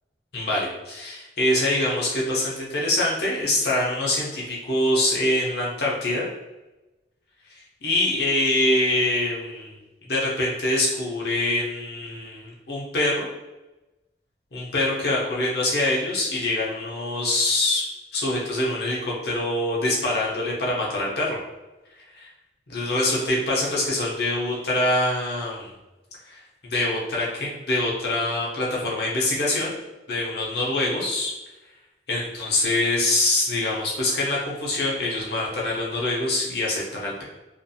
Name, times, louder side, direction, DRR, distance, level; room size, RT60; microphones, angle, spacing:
voice 1, 0.3-6.3 7.8-9.7 10.1-13.3 14.5-17.9 18.1-21.4 22.1-22.3 22.7-25.7 26.3-26.4 26.7-29.7 30.1-31.3 32.1-37.2, left 1 dB, 60° left, -4 dB, 0.6 m, -24 dB
2.5 x 2.3 x 2.6 m, 1.1 s
head